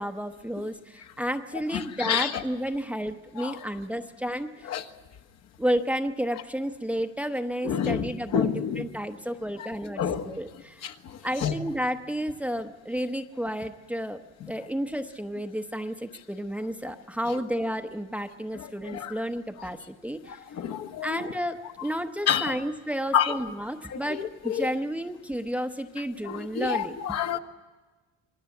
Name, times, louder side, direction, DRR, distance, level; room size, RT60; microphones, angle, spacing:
voice 1, 0.0-4.7 5.6-10.8 11.2-14.2 14.5-20.4 21.0-27.0, equal, 5° right, 7 dB, 0.9 m, -31 dB
voice 2, 1.7-2.4 3.4-3.6 4.6-4.8 7.6-8.8 9.6-9.7 10.0-10.4 10.8-11.6 18.5-19.2 20.3-21.3 22.3-22.6 23.1-23.4 23.9-24.7 26.2-27.4, left 8 dB, 55° left, 6 dB, 1.5 m, -29 dB
26.5 x 19.5 x 8.4 m, 1.3 s
supercardioid pair, 110°, 31 cm